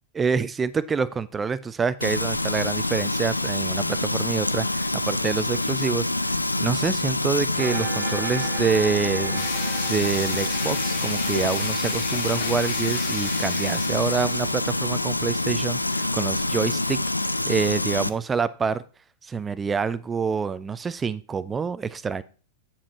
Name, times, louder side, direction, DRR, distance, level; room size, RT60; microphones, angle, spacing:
voice 1, 0.1-9.4 9.9-17.0 17.4-18.8 19.2-22.2, right 5 dB, 20° right, 17 dB, 0.4 m, -27 dB
Frying (food), 2.0-18.1, left 2 dB, 90° left, 0.3 m, -26 dB
sound 1, 7.6-16.6, right 7 dB, 35° right, 1.0 m, -40 dB
sound 2, 9.4-14.8, left 7 dB, 50° left, 1.3 m, -34 dB
8.5 x 7.3 x 3.0 m, 0.37 s
figure-of-eight pair, 90°, 0 cm